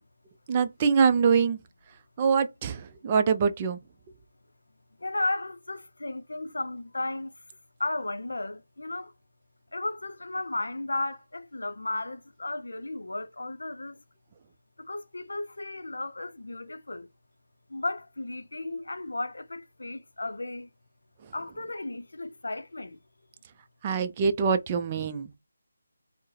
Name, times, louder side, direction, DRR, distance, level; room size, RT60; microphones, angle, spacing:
voice 1, 0.5-1.6 2.2-3.8 23.8-25.3, right 6 dB, 25° right, 0.4 m, -24 dB
voice 2, 5.0-7.3 7.8-9.1 9.7-14.0 14.8-17.1 17.7-20.7 21.3-23.0, left 2 dB, 80° left, 0.5 m, -34 dB
4.4 x 2.0 x 3.2 m
figure-of-eight pair, 160°, 0 cm